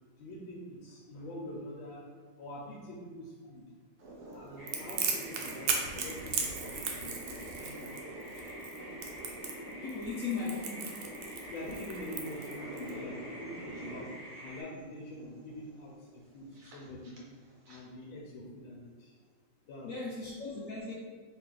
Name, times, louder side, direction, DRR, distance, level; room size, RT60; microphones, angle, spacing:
voice 1, 0.2-2.0 2.4-3.6 4.2-7.9 11.5-15.9 16.3-17.2 17.7-19.1 19.7-19.9, left 1 dB, 85° left, -4 dB, 1.4 m, -45 dB
sound 1, 4.0-17.8, right 1 dB, 55° right, 1.1 m, -47 dB
sound 2, 4.6-14.6, equal, 15° left, 1.2 m, -48 dB
Crackle, 4.7-12.9, right 5 dB, 85° right, 1.4 m, -36 dB
voice 2, 9.8-10.9 19.8-20.9, left 4 dB, 65° left, -5 dB, 0.8 m, -37 dB
4.1 x 2.9 x 3.8 m, 1.5 s
omnidirectional pair, 2.1 m